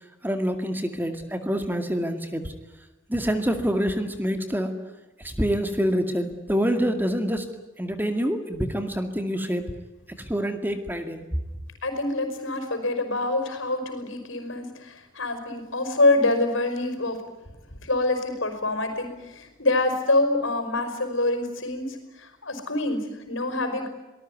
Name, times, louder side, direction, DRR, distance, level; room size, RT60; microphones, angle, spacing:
voice 1, 0.2-2.5 3.1-4.8 5.2-7.5 7.8-9.6 10.2-11.2, equal, 10° right, 7 dB, 2.2 m, -26 dB
voice 2, 11.8-17.2 17.8-23.9, left 2 dB, 65° left, 8 dB, 5.4 m, -26 dB
24.5 x 19.5 x 9.6 m, 1.1 s
head